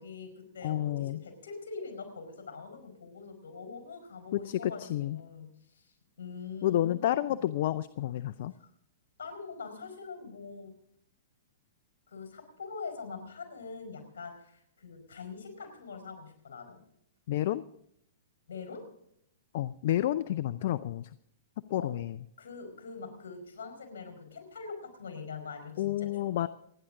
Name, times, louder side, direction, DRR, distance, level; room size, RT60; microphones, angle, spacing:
voice 1, 0.0-7.4 8.6-8.7 9.2-10.7 12.1-16.8 18.5-18.9 21.8-22.0 22.4-26.5, left 4 dB, 75° left, 5 dB, 4.8 m, -44 dB
voice 2, 0.6-1.2 4.3-5.2 6.6-8.5 17.3-17.6 19.5-21.1 21.7-22.2 25.8-26.5, left 13 dB, 60° left, 16 dB, 0.5 m, -30 dB
27.5 x 10.0 x 3.8 m, 0.73 s
hypercardioid pair, 120°, 0 cm